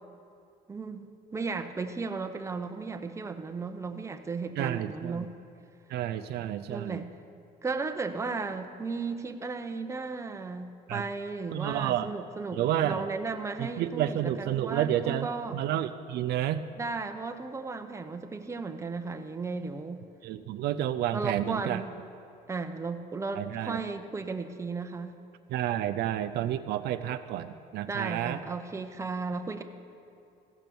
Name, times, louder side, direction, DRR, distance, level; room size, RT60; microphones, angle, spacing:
voice 1, 0.7-5.3 6.7-7.1 7.6-15.6 16.8-20.0 21.1-22.0 22.5-25.2 27.8-29.6, right 4 dB, 15° right, 6 dB, 0.7 m, -35 dB
voice 2, 4.6-5.3 5.9-7.0 10.9-11.0 11.5-12.1 12.5-13.0 13.6-16.7 20.2-21.8 23.4-23.8 25.5-28.4, right 11 dB, 75° right, 10 dB, 0.5 m, -30 dB
15.0 x 6.0 x 6.9 m, 2.6 s
cardioid pair, 110°, 17 cm